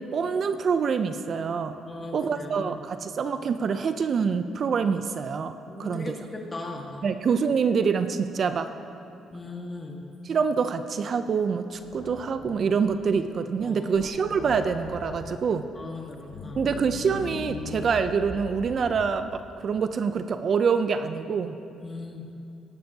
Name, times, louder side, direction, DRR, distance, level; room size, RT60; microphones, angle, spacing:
voice 1, 0.1-1.8 2.1-6.1 7.0-8.7 10.2-15.7 16.5-21.6, right 6 dB, 50° right, 10 dB, 0.4 m, -26 dB
voice 2, 1.9-2.7 5.7-7.0 9.3-10.0 13.6-14.1 15.8-16.6 21.8-22.3, left 2 dB, 25° left, 1 dB, 1.4 m, -38 dB
sound 1, 11.7-13.2 13.6-13.7 13.9-15.5 16.1-19.3, left 4 dB, 75° left, 0.8 m, -40 dB
16.0 x 11.5 x 2.7 m, 2.7 s
cardioid pair, 110°, 0 cm